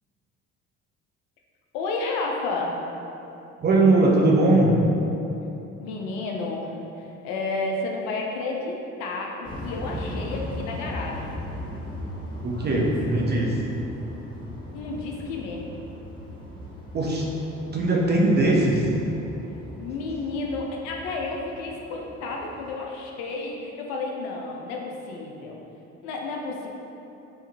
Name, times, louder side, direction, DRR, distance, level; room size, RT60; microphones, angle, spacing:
voice 1, 1.7-2.8 5.8-11.3 14.7-15.7 19.8-25.6 26.0-26.7, left 3 dB, 55° left, 0 dB, 0.5 m, -31 dB
voice 2, 3.6-4.8 12.4-13.6 16.9-17.3 17.7-18.9, right 2 dB, 25° right, -2 dB, 0.5 m, -20 dB
sound 1, 9.4-22.7, left 1 dB, 10° left, 1.0 m, -38 dB
3.5 x 3.0 x 2.8 m, 2.9 s
figure-of-eight pair, 45°, 39 cm